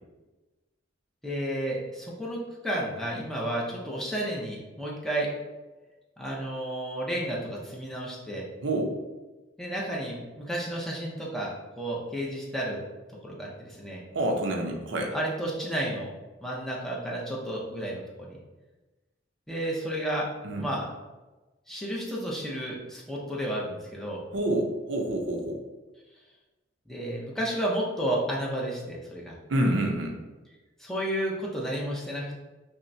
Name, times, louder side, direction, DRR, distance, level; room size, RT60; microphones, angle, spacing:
voice 1, 1.2-5.3 6.2-8.4 9.6-12.8 13.2-14.0 15.1-16.1 16.4-18.4 19.5-20.2 20.6-20.8 21.7-24.2 26.9-29.4 30.8-32.3, right 1 dB, ahead, -4 dB, 0.6 m, -32 dB
voice 2, 8.6-8.9 14.1-15.1 20.4-20.7 24.3-25.6 29.5-30.1, right 1 dB, 70° right, 2 dB, 0.6 m, -27 dB
5.5 x 2.1 x 2.6 m, 1.2 s
head